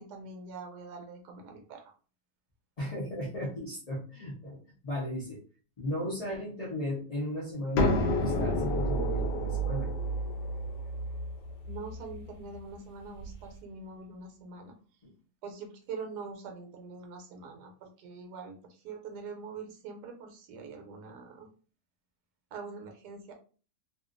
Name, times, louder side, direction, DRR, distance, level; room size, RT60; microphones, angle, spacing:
voice 1, 0.0-1.9 11.6-14.7 15.4-21.5 22.5-23.3, right 4 dB, 75° right, 4 dB, 1.2 m, -44 dB
voice 2, 2.8-4.6 4.8-5.4 5.8-9.9, left 1 dB, 40° left, -7 dB, 0.5 m, -35 dB
sound 1, 7.8-13.4, equal, 85° left, 1.2 m, -30 dB
2.8 x 2.4 x 2.5 m, 0.39 s
omnidirectional pair, 1.8 m